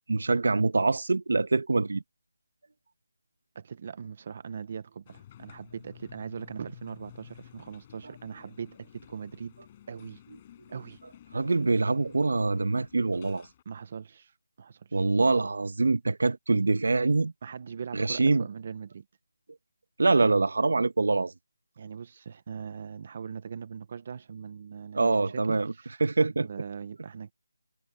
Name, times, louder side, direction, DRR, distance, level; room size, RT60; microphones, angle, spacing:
voice 1, 0.1-2.0 11.3-13.5 14.9-17.3 17.9-18.5 20.0-21.3 24.9-25.7 26.0-26.5, right 3 dB, 60° right, 1.4 m, -24 dB
voice 2, 3.5-9.5 9.9-10.2 10.7-11.0 13.7-15.0 17.4-19.0 21.7-26.0 26.4-27.3, right 6 dB, 25° right, 0.9 m, -41 dB
sound 1, 5.1-13.6, left 11 dB, 15° left, 5.1 m, -53 dB
figure-of-eight pair, 175°, 0 cm